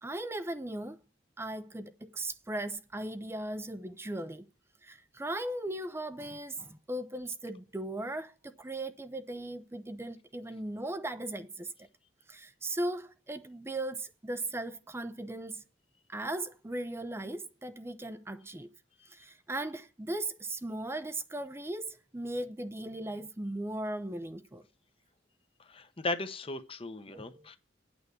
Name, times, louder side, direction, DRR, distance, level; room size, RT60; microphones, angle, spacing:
voice 1, 0.0-1.0 1.4-4.5 4.8-11.7 12.3-15.7 16.1-18.7 19.1-24.6 27.1-27.5, right 1 dB, 15° right, 0.6 m, -38 dB
voice 2, 25.6-27.6, left 2 dB, 30° left, 0.9 m, -37 dB
8.9 x 5.8 x 8.2 m
head